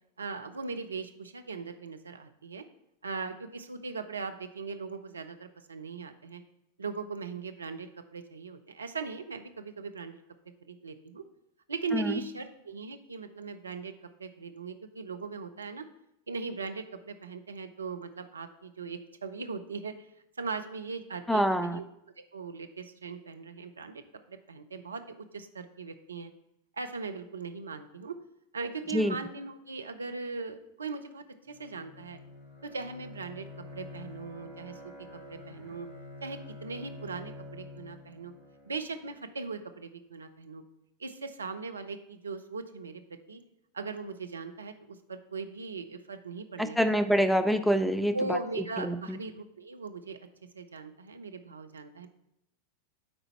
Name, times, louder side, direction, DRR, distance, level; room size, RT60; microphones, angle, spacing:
voice 1, 0.2-2.6 3.0-6.4 6.8-10.2 10.7-11.2 11.7-13.9 14.2-15.9 16.3-19.9 20.4-21.9 22.3-24.0 24.3-25.0 25.3-26.3 26.7-28.2 28.5-32.2 32.6-33.4 33.7-34.8 35.3-35.9 36.2-38.3 38.7-40.6 41.0-43.0 43.3-43.4 43.7-47.0 48.1-50.2 50.5-52.1, right 4 dB, 75° right, 7 dB, 0.6 m, -39 dB
voice 2, 21.3-21.8 28.9-29.1 46.6-48.4 48.8-49.2, equal, ahead, 11 dB, 0.3 m, -26 dB
Bowed string instrument, 31.5-39.3, left 2 dB, 35° left, 2.5 m, -47 dB
9.6 x 4.0 x 4.4 m, 0.81 s
figure-of-eight pair, 90°, 0 cm